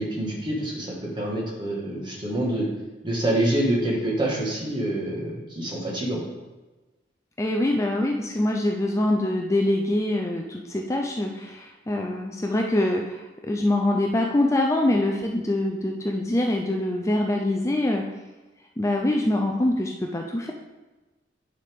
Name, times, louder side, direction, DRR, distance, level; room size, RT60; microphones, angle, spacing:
voice 1, 0.0-2.7 3.0-6.2, right 1 dB, 25° right, -3 dB, 1.7 m, -26 dB
voice 2, 7.4-18.0 18.8-20.5, left 1 dB, 15° left, 1 dB, 0.4 m, -24 dB
9.3 x 5.1 x 3.6 m, 1.2 s
head